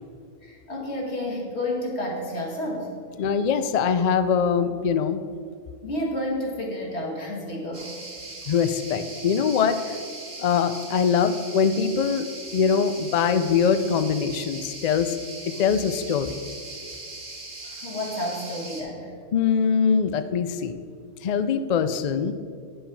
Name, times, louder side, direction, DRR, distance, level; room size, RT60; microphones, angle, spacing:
voice 1, 0.4-2.9 5.8-7.9 17.6-19.1, left 1 dB, 60° left, -2 dB, 1.9 m, -30 dB
voice 2, 3.2-5.2 8.5-10.0 10.4-15.1 15.5-16.4 19.3-20.8 21.2-22.3, left 6 dB, 90° left, 11 dB, 0.3 m, -23 dB
sound 1, 7.7-18.8, right 2 dB, 60° right, 1.9 m, -39 dB
9.6 x 6.4 x 4.6 m, 2.2 s
omnidirectional pair, 1.3 m